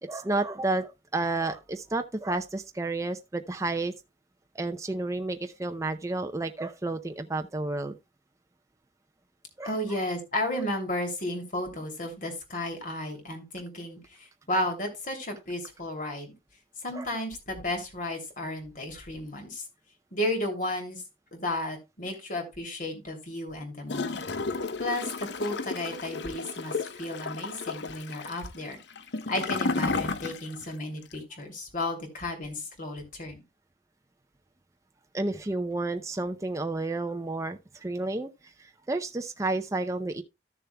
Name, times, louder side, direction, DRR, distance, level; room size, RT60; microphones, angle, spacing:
voice 1, 0.0-3.9 4.5-8.0 9.6-10.0 16.9-17.1 35.1-40.2, right 2 dB, 20° right, 0.5 m, -31 dB
voice 2, 9.6-16.3 16.8-19.6 20.1-21.0 21.3-24.3 24.8-28.8 29.3-33.4, left 1 dB, 50° left, 2.8 m, -33 dB
Gurgling / Toilet flush, 23.9-30.7 31.0-31.1, left 3 dB, 80° left, 0.7 m, -33 dB
14.0 x 6.8 x 2.2 m
head